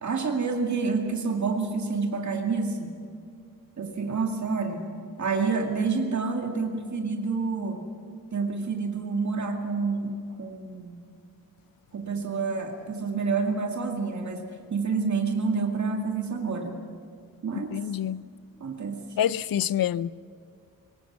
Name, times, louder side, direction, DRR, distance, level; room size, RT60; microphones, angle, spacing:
voice 1, 0.0-2.9 3.8-4.8 5.2-7.8 8.3-11.0 11.9-16.8 17.4-17.8 18.6-19.0, right 4 dB, 50° right, 2.1 m, -28 dB
voice 2, 17.7-18.2 19.2-20.1, left 10 dB, 75° left, 0.5 m, -26 dB
22.5 x 19.5 x 7.3 m
wide cardioid pair, 175°, 35 cm